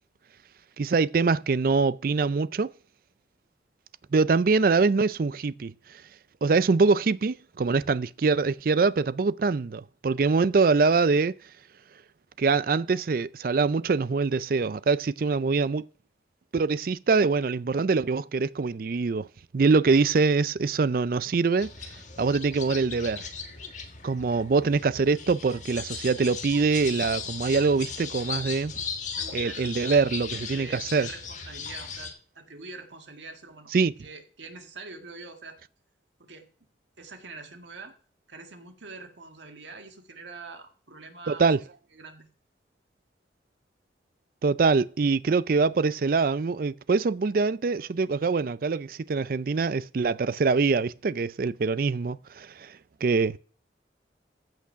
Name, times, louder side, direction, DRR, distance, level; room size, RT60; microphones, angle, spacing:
voice 1, 0.8-2.7 4.1-5.7 6.4-11.3 12.4-15.9 16.5-19.3 19.5-21.7 22.2-23.3 24.0-28.7 29.3-31.1 33.7-33.9 41.3-41.6 44.4-52.7 53.0-53.4, right 4 dB, 50° right, 0.4 m, -24 dB
sound 1, 21.6-32.1, left 5 dB, 40° left, 1.7 m, -37 dB
voice 2, 29.1-29.7 30.5-33.7 34.0-35.6 36.2-36.5 37.0-38.0 38.3-41.5 41.9-42.3, right 3 dB, 90° right, 1.8 m, -44 dB
14.5 x 6.0 x 5.7 m
head